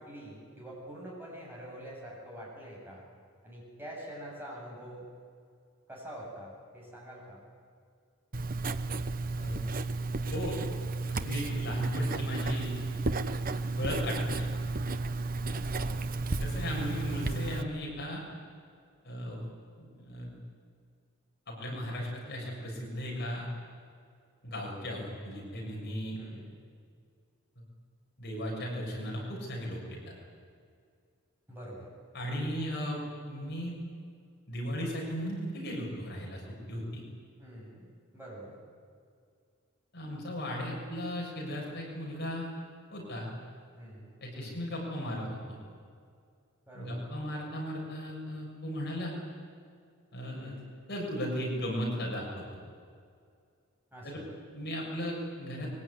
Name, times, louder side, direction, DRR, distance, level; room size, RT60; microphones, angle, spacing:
voice 1, 0.0-3.0 3.4-5.1 5.9-7.4 15.5-15.9 22.3-22.6 26.2-26.6 31.5-31.9 37.4-37.8 38.1-38.6 43.7-44.7 46.7-47.1 50.4-50.7 53.9-54.3, right 1 dB, 10° right, -4 dB, 7.9 m, -46 dB
Writing, 8.3-17.6, right 3 dB, 40° right, 1.0 m, -33 dB
voice 2, 11.1-12.8 13.8-14.5 16.4-18.2 19.0-19.5 19.8-20.4 21.5-23.5 24.4-26.2 28.2-30.0 32.1-33.0 33.2-33.8 34.5-36.4 36.7-37.0 39.9-42.5 42.9-43.3 44.2-45.6 46.7-49.1 50.1-50.6 50.9-52.4 54.0-54.2 54.5-55.7, equal, 50° left, -2 dB, 7.1 m, -36 dB
24.0 x 23.0 x 9.9 m, 2.2 s
head